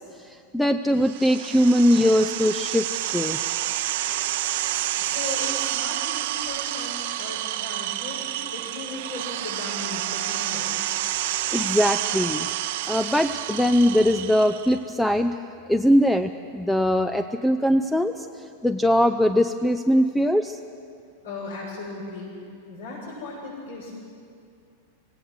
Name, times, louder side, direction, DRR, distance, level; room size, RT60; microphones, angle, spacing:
voice 1, 0.0-3.4 4.1-4.2 11.5-12.5 12.9-15.4 15.7-20.6, equal, 5° left, 9 dB, 0.6 m, -21 dB
sound 1, 1.0-14.8, right 14 dB, 55° right, 0.8 m, -29 dB
voice 2, 5.0-10.9 21.2-22.3 22.7-24.0, left 3 dB, 70° left, -9 dB, 7.4 m, -37 dB
26.0 x 17.5 x 6.5 m, 2.4 s
figure-of-eight pair, 90°, 0 cm